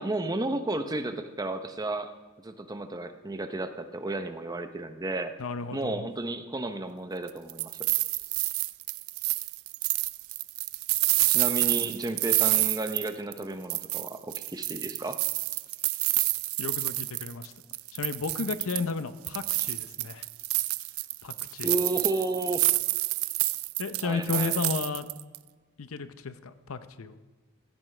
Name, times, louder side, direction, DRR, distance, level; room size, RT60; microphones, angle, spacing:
voice 1, 0.0-2.1 2.4-5.3 5.7-7.8 11.3-15.2 21.6-22.7 24.0-24.6, right 2 dB, 20° right, 8 dB, 0.7 m, -32 dB
voice 2, 5.4-6.1 16.6-17.5 17.9-20.2 21.2-21.7 23.8-25.1 25.8-27.2, left 4 dB, 70° left, 11 dB, 0.7 m, -33 dB
sound 1, 7.3-13.4 13.7-17.5 17.7-18.9 19.2-25.4, right 19 dB, 70° right, 0.4 m, -28 dB
15.5 x 15.0 x 3.3 m, 1.3 s
head